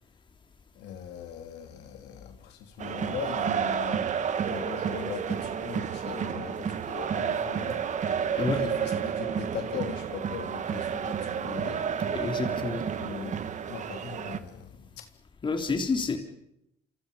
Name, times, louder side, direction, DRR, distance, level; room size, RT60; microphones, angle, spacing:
voice 1, 0.8-7.9 8.4-11.9 13.0-13.4 13.7-15.1, left 8 dB, 80° left, 3.5 m, -40 dB
sound 1, 2.8-14.4, right 7 dB, 45° right, 1.7 m, -31 dB
voice 2, 12.1-12.9 15.4-16.2, left 4 dB, 30° left, 3.5 m, -29 dB
28.0 x 27.5 x 5.5 m
cardioid pair, 110°, 17 cm